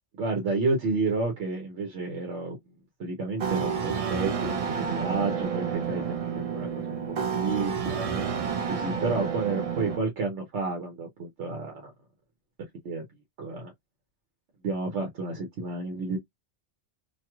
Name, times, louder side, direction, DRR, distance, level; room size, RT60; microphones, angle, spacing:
voice 1, 0.2-2.6 3.0-6.7 7.4-8.2 8.7-11.9 12.8-13.0 13.4-13.7 14.6-16.2, right 3 dB, 85° right, 1.2 m, -30 dB
sound 1, 3.4-10.0, right 7 dB, 55° right, 0.4 m, -30 dB
2.9 x 2.7 x 2.3 m
omnidirectional pair, 1.2 m